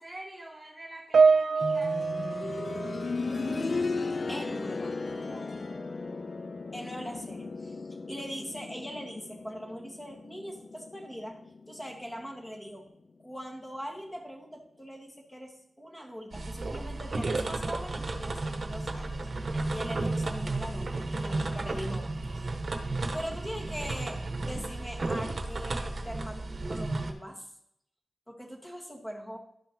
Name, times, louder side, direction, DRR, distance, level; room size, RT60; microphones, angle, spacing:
voice 1, 0.0-1.9 4.4-4.5 5.3-5.8, right 1 dB, 10° right, -4 dB, 1.2 m, -46 dB
Piano, 1.1-3.8 4.0-4.4 5.2-5.3, right 5 dB, 85° right, 0.3 m, -26 dB
sound 1, 1.6-12.4 12.7-12.8 13.7-13.8, left 3 dB, 55° left, 0.4 m, -36 dB
voice 2, 4.3-5.0 6.7-11.4 11.7-12.9 13.2-19.3 19.7-22.5 23.1-26.4 26.7-27.5 28.3-29.4, equal, 20° left, 0 dB, 1.9 m, -41 dB
sound 2, 16.3-27.1, right 2 dB, 55° right, 0.9 m, -33 dB
12.0 x 5.6 x 3.1 m, 0.75 s
cardioid pair, 45°, 0 cm